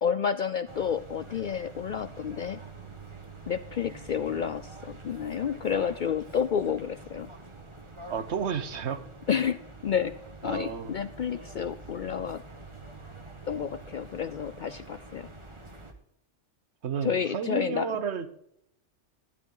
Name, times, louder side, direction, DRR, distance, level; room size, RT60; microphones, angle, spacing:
voice 1, 0.0-2.6 3.5-7.3 9.3-10.1 10.4-12.4 13.5-15.3 17.0-18.0, left 7 dB, 60° left, 13 dB, 0.5 m, -30 dB
sound 1, 0.7-15.9, right 3 dB, 25° right, 1.4 m, -46 dB
voice 2, 8.1-9.0 10.4-10.9 16.8-18.3, right 7 dB, 70° right, 12 dB, 1.2 m, -32 dB
12.5 x 11.0 x 3.8 m, 0.74 s
omnidirectional pair, 1.2 m